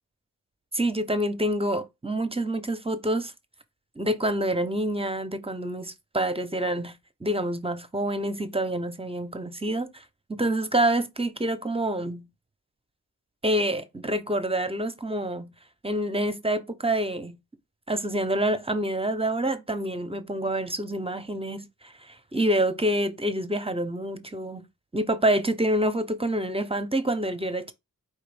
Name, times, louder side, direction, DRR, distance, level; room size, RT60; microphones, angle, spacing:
voice 1, 0.7-3.3 4.0-6.9 7.2-10.0 10.3-12.3 13.4-15.5 15.8-17.4 17.9-24.6 24.9-27.7, right 1 dB, 15° right, 0.7 m, -27 dB
4.7 x 3.0 x 3.3 m
cardioid pair, 55°, 34 cm